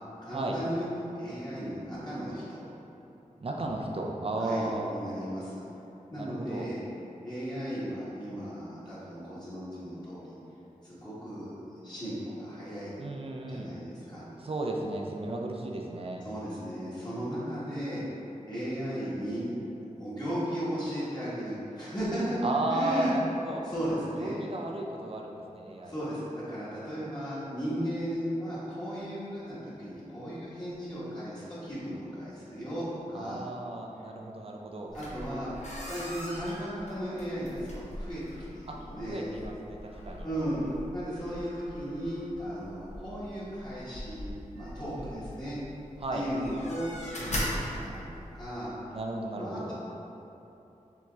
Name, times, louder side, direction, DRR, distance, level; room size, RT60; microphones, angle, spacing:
voice 1, 0.2-0.9 1.1-2.6 4.4-5.6 6.1-6.8 7.2-10.4 10.8-11.5 11.8-13.0 13.5-14.2 16.2-18.0 18.5-19.5 19.9-23.2 23.6-24.3 25.8-33.4 34.9-35.5 35.8-38.2 38.5-39.3 40.2-40.6 40.9-44.3 44.5-45.6 46.1-48.7 49.3-49.7, equal, 30° left, -11 dB, 1.4 m, -35 dB
voice 2, 3.4-4.9 6.2-6.7 13.0-13.7 14.4-16.2 22.4-23.6 24.2-25.9 33.1-34.9 38.7-38.8 39.1-40.3 44.8-45.3 46.0-46.2 48.9-49.7, right 2 dB, 45° right, 0 dB, 0.5 m, -34 dB
sound 1, 34.9-48.5, equal, 60° left, 0.8 m, -41 dB
6.8 x 2.9 x 2.4 m, 2.9 s
wide cardioid pair, 65°, 13 cm